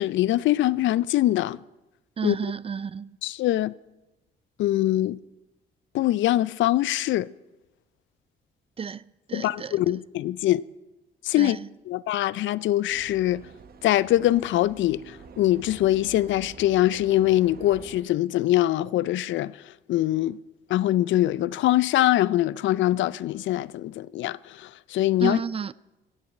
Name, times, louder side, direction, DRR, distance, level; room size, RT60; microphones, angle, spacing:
voice 1, 0.0-1.6 2.2-2.4 3.2-3.7 4.6-5.2 5.9-7.3 9.3-10.6 11.2-11.6 11.9-13.5 13.8-19.5 19.9-20.4 20.7-25.4, left 14 dB, 70° left, 0.4 m, -23 dB
voice 2, 2.2-3.2 8.8-9.0 9.3-9.8 11.4-11.7 25.2-25.7, right 6 dB, 30° right, 0.4 m, -31 dB
sound 1, 12.9-18.0, right 6 dB, 50° right, 0.9 m, -47 dB
15.0 x 7.0 x 7.6 m
cardioid pair, 90°, 20 cm